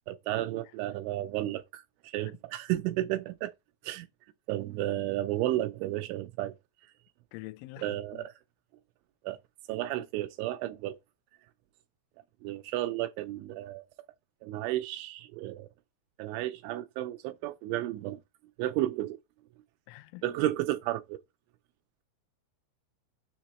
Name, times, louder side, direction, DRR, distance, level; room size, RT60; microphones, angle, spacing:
voice 1, 0.1-3.5 3.8-4.1 4.5-6.6 7.8-8.3 9.2-9.4 9.7-11.0 12.4-13.9 14.4-15.7 16.2-18.2 18.6-19.2 20.2-21.2, right 15 dB, 85° right, 2.7 m, -32 dB
voice 2, 7.3-8.3 19.9-20.2, left 20 dB, 85° left, 3.1 m, -46 dB
7.5 x 6.5 x 3.1 m
omnidirectional pair, 5.6 m